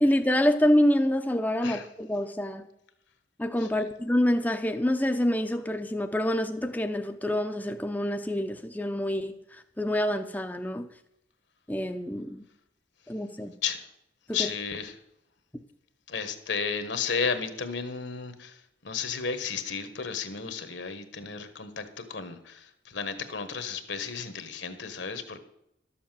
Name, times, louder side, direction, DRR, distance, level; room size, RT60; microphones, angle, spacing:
voice 1, 0.0-2.7 3.4-10.9 11.7-12.4 13.1-13.5 14.4-14.5, left 1 dB, 10° left, 5 dB, 0.5 m, -26 dB
voice 2, 14.3-15.0 16.1-25.4, left 5 dB, 70° left, 10 dB, 1.3 m, -33 dB
12.0 x 7.1 x 7.5 m, 0.81 s
head